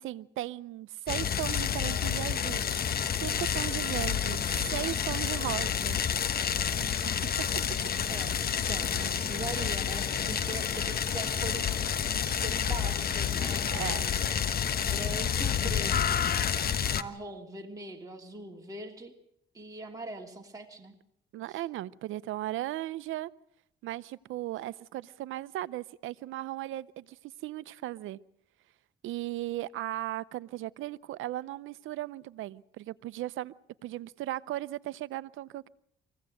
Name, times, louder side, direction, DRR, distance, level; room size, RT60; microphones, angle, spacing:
voice 1, 0.0-2.6 3.2-4.4 4.7-6.0 6.8-6.9 7.4-7.6 13.7-14.0 21.3-23.3 23.8-28.2 29.0-33.5 33.8-35.7, right 15 dB, 85° right, 17 dB, 0.8 m, -37 dB
sound 1, 1.1-17.0, left 8 dB, 50° left, 1.2 m, -29 dB
voice 2, 8.7-11.8 12.2-14.3 14.9-16.3 16.9-19.1 19.5-20.9, right 2 dB, 15° right, 0 dB, 3.1 m, -41 dB
24.5 x 16.5 x 7.8 m, 0.76 s
cardioid pair, 90°, 20 cm